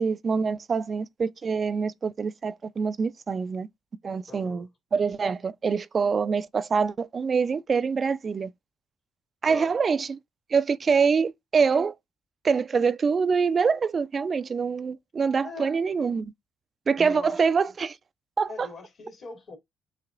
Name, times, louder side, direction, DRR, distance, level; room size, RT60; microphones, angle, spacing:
voice 1, 0.0-3.7 4.0-8.5 9.4-10.2 10.5-11.9 12.4-16.3 16.9-18.0 18.4-18.7, right 5 dB, 45° right, 0.4 m, -25 dB
voice 2, 4.3-4.6 9.5-9.7 15.4-15.7 16.9-17.4 18.5-19.6, left 3 dB, 55° left, 2.6 m, -41 dB
7.5 x 2.8 x 2.4 m
hypercardioid pair, 50°, 0 cm